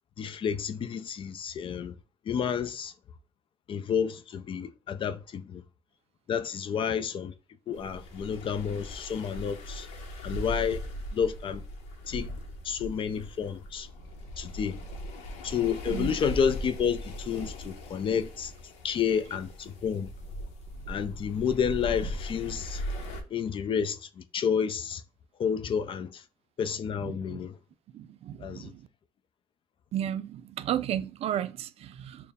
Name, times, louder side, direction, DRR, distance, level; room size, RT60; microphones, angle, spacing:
voice 1, 0.2-1.9 2.3-2.9 3.7-5.6 6.3-7.3 7.7-9.9 10.2-10.8 11.1-11.6 12.1-12.3 12.6-13.9 14.4-14.8 15.4-18.5 18.8-20.1 20.9-22.8 23.3-25.0 25.4-26.2 26.6-27.6 28.4-28.7, left 7 dB, 50° left, 0.5 m, -30 dB
sound 1, 7.7-23.2, equal, 90° left, 0.7 m, -39 dB
voice 2, 27.0-27.4 27.9-28.8 29.9-32.3, right 10 dB, 65° right, 0.4 m, -33 dB
4.2 x 2.1 x 3.5 m
cardioid pair, 85°, 11 cm